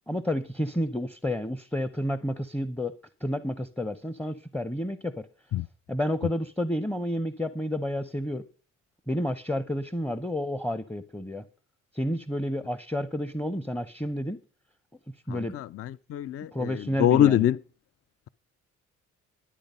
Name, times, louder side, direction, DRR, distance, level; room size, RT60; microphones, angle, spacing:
voice 1, 0.1-2.9 3.2-5.3 5.9-8.4 9.1-11.4 11.9-14.4 15.3-15.6 16.5-17.4, left 1 dB, 5° left, 0.7 m, -30 dB
voice 2, 15.3-17.6, left 11 dB, 50° left, 0.4 m, -24 dB
12.0 x 8.8 x 5.4 m
cardioid pair, 90°, 30 cm